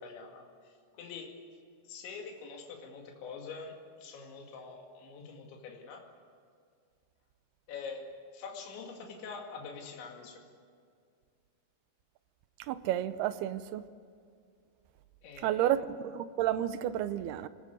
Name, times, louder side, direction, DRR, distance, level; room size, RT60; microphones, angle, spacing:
voice 1, 0.0-1.4 1.8-6.1 7.7-10.4 15.2-15.7, left 5 dB, 85° left, 1 dB, 4.7 m, -45 dB
voice 2, 12.6-13.9 15.4-17.5, right 12 dB, 80° right, 12 dB, 2.5 m, -31 dB
25.0 x 19.5 x 8.1 m, 2.2 s
omnidirectional pair, 5.1 m